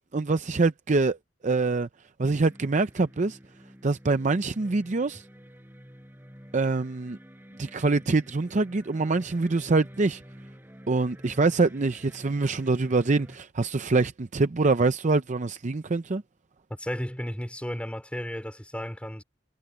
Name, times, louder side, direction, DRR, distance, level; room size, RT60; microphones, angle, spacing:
voice 1, 0.1-1.2 1.4-1.9 2.2-3.4 3.8-5.2 6.5-7.2 7.6-10.2 10.9-16.2, right 3 dB, 40° right, 0.6 m, -25 dB
sound 1, 2.2-13.4, equal, 10° right, 4.6 m, -50 dB
voice 2, 16.8-19.2, equal, 5° left, 4.1 m, -34 dB
head